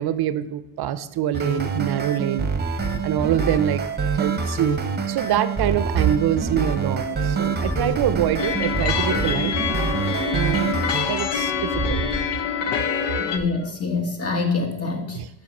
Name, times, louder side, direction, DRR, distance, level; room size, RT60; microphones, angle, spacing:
voice 1, 0.0-2.5 3.0-3.8 4.1-4.8 5.1-9.5 10.3-10.7 11.0-12.0 15.1-15.3, right 10 dB, 65° right, 14 dB, 0.6 m, -24 dB
sound 1, 1.3-11.0, right 5 dB, 25° right, 0.9 m, -26 dB
sound 2, 6.4-12.2, equal, 15° left, 1.8 m, -34 dB
sound 3, 8.4-13.4, left 7 dB, 75° left, 0.8 m, -25 dB
voice 2, 13.2-15.2, left 4 dB, 35° left, 3 dB, 1.6 m, -25 dB
7.6 x 5.5 x 5.4 m, 0.87 s
cardioid pair, 95°, 42 cm